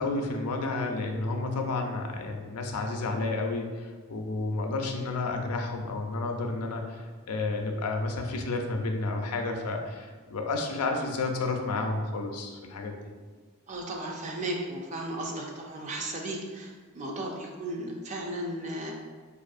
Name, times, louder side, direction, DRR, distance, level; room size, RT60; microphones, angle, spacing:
voice 1, 0.0-12.9, left 3 dB, 90° left, 3 dB, 0.5 m, -31 dB
voice 2, 13.7-18.9, right 1 dB, 30° right, 0 dB, 0.4 m, -35 dB
4.7 x 2.5 x 2.5 m, 1.4 s
head